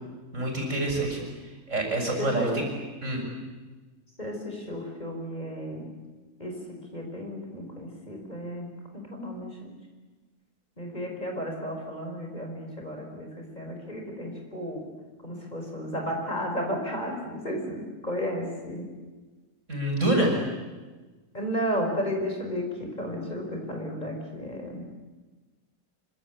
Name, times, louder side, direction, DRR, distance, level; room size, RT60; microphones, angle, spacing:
voice 1, 0.3-1.2 1.7-2.7 3.0-3.2 19.7-20.4, right 1 dB, 50° right, 1 dB, 7.4 m, -26 dB
voice 2, 2.2-2.6 4.2-5.9 6.4-9.7 10.8-14.9 15.2-18.9 21.3-24.9, equal, 25° left, 2 dB, 5.3 m, -33 dB
26.0 x 25.0 x 8.6 m, 1.3 s
omnidirectional pair, 1.7 m